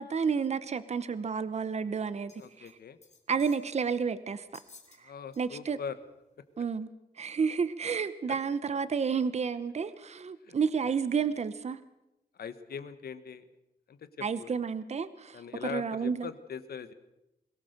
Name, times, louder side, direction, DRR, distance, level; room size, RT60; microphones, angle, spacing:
voice 1, 0.0-2.3 2.6-2.7 3.3-4.4 5.0-5.1 5.4-5.8 6.6-6.9 7.2-11.8 14.2-16.3, right 6 dB, 45° right, 14 dB, 0.9 m, -31 dB
sound 1, 2.3-2.7 3.0-3.7 4.5-5.0 5.3-5.5 6.0-6.1, left 4 dB, 45° left, 2.8 m, -56 dB
voice 2, 2.4-3.0 5.0-6.0 8.3-8.4 10.4-10.5 10.8-10.9 12.4-13.5 13.9-14.5 15.3-16.9, left 7 dB, 90° left, 12 dB, 1.3 m, -41 dB
22.5 x 17.5 x 6.7 m, 0.89 s
wide cardioid pair, 135°, 16 cm